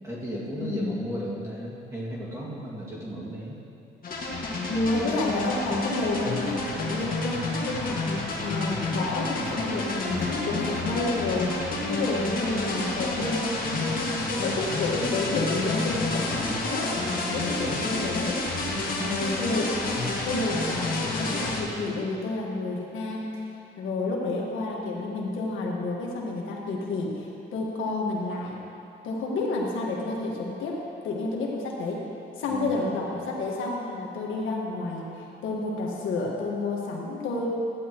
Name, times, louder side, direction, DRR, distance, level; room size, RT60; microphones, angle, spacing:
voice 1, 0.0-3.6 17.6-18.1 18.7-19.2 32.5-32.9, equal, 15° right, -8 dB, 2.2 m, -35 dB
voice 2, 0.6-0.9 4.7-8.0 8.4-11.6 11.9-18.6 19.0-23.4 23.8-28.5 29.0-32.0 32.4-35.1 35.4-37.5, left 2 dB, 80° left, -3 dB, 1.6 m, -30 dB
sound 1, 4.0-21.6, left 2 dB, 45° left, 1.9 m, -29 dB
13.5 x 9.8 x 3.0 m, 2.8 s
cardioid pair, 90°, 20 cm